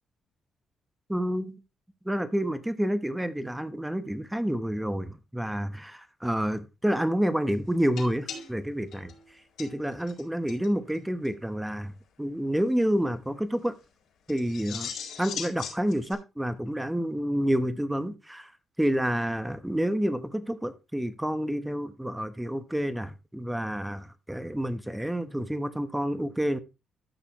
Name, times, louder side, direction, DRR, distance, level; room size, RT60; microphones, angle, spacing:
voice 1, 1.1-1.5 2.0-9.1 9.6-13.7 14.3-14.9 15.2-18.5 18.8-26.6, equal, 5° right, 1.0 m, -29 dB
sound 1, 8.0-10.2 10.5-10.7 10.9-11.0 11.2-11.3 14.3-16.1, left 7 dB, 75° left, 4.1 m, -40 dB
12.5 x 6.7 x 3.0 m
cardioid pair, 135°, 0 cm